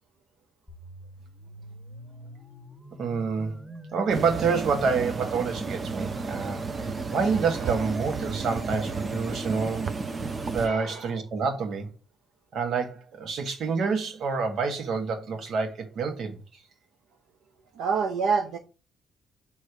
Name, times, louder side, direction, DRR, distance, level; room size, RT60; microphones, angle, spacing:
sound 1, 0.7-10.7, equal, 5° left, 1.0 m, -44 dB
voice 1, 3.0-3.6 3.9-6.6 7.1-10.0 10.5-11.9 12.5-16.4, right 5 dB, 65° right, 1.5 m, -28 dB
sound 2, 4.1-10.7, right 4 dB, 35° right, 0.6 m, -33 dB
voice 2, 10.6-11.1 17.8-18.6, right 5 dB, 85° right, 0.7 m, -27 dB
6.6 x 3.1 x 5.8 m
cardioid pair, 90°, 0 cm